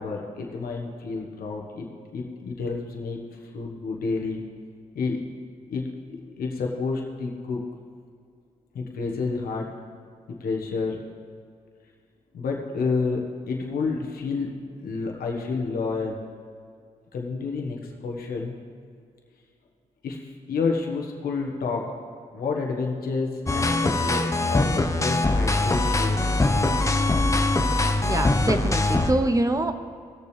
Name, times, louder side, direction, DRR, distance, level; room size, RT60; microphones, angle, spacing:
voice 1, 0.0-4.4 4.9-5.2 5.7-5.9 6.4-7.7 8.7-9.7 10.3-11.0 12.3-14.6 14.8-16.2 17.1-18.6 20.0-21.9 22.3-26.3, left 4 dB, 80° left, 0 dB, 1.3 m, -29 dB
sound 1, 23.5-29.1, left 2 dB, 20° left, 0.8 m, -22 dB
voice 2, 28.0-29.7, right 2 dB, 20° right, 8 dB, 0.8 m, -25 dB
18.0 x 6.9 x 3.4 m, 2.2 s
cardioid pair, 60°, 15 cm